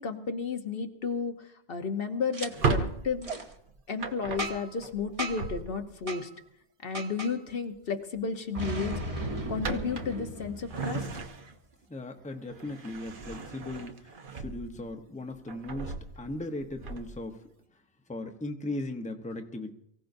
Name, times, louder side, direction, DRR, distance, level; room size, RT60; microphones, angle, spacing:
voice 1, 0.0-3.3 3.9-6.3 6.8-9.2 9.5-11.1, left 5 dB, 60° left, 6 dB, 1.1 m, -33 dB
Boom, 2.3-2.5 3.2-3.4 4.4-4.8 5.2-5.5 6.1-6.2 6.9-7.3 8.5-11.2, right 1 dB, 35° right, 1.2 m, -36 dB
Drawer open or close, 2.4-6.1 7.5-7.8 8.2-8.4 8.8-11.7 12.2-14.9 15.3-17.3, right 4 dB, 55° right, 1.1 m, -36 dB
voice 2, 11.9-17.4 18.1-19.7, left 2 dB, 10° left, 4 dB, 0.8 m, -38 dB
24.0 x 16.0 x 2.6 m, 0.74 s
omnidirectional pair, 1.1 m